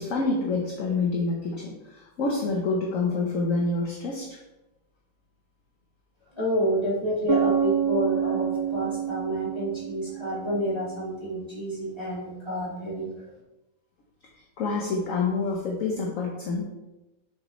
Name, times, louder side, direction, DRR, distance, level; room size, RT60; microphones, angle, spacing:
voice 1, 0.0-4.4 14.6-16.7, left 3 dB, 55° left, -1 dB, 1.1 m, -27 dB
voice 2, 6.3-13.3, equal, 15° left, -7 dB, 2.5 m, -29 dB
Bass guitar, 7.3-10.9, right 8 dB, 70° right, 0.9 m, -28 dB
6.8 x 6.1 x 3.2 m, 1.0 s
omnidirectional pair, 2.1 m